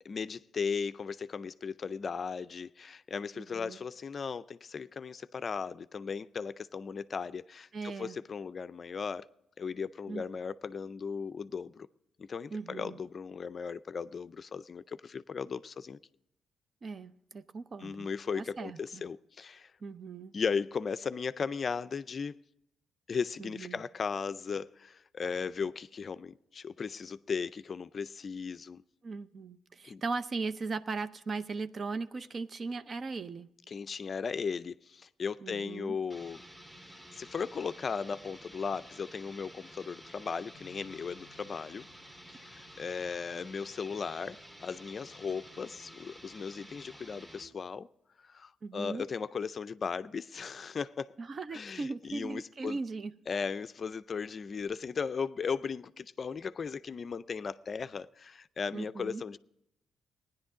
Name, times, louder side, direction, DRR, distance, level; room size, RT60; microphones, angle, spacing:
voice 1, 0.0-9.2 9.6-11.9 12.2-16.0 17.8-19.7 20.3-22.4 23.1-28.8 29.8-30.0 33.7-36.4 37.1-41.9 42.3-47.9 48.2-51.1 51.5-52.8 53.3-59.4, left 5 dB, 40° left, 0.4 m, -37 dB
voice 2, 3.4-3.8 7.7-8.2 10.1-10.3 12.5-13.0 16.8-18.1 18.3-19.0 19.8-20.3 23.4-23.8 29.0-33.5 35.4-36.0 48.6-49.1 51.2-53.2 58.7-59.2, right 4 dB, 40° right, 0.6 m, -38 dB
sound 1, 36.1-47.5, equal, 15° right, 1.7 m, -52 dB
Bass guitar, 40.5-46.8, left 3 dB, 85° right, 1.7 m, -66 dB
17.0 x 10.5 x 3.7 m
cardioid pair, 90°, 0 cm